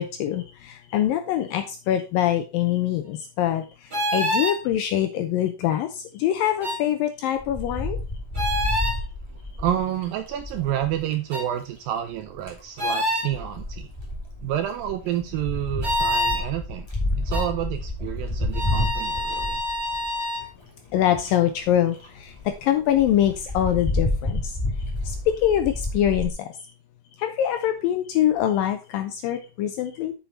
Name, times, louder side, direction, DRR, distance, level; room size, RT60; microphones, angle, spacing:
voice 1, 0.0-8.0 20.9-24.6 25.1-26.5 27.2-30.1, left 11 dB, 80° left, 8 dB, 2.1 m, -24 dB
sound 1, 3.9-4.6 6.6-6.8 8.3-9.0 11.3-11.5 12.8-13.3 15.8-16.4 17.3-17.5 18.5-20.4, left 1 dB, 40° right, 0.6 m, -26 dB
Wind, 7.4-11.0 12.1-12.6 13.3-20.3 20.9-21.0 21.2-21.3 21.6-21.7 22.0-22.1 22.4-22.5 22.9-26.3, left 1 dB, 10° left, 1.7 m, -29 dB
voice 2, 9.6-13.9 14.4-16.9 17.2-19.6, right 11 dB, 80° right, 8 dB, 2.1 m, -29 dB
7.3 x 7.0 x 4.5 m, 0.30 s
omnidirectional pair, 4.7 m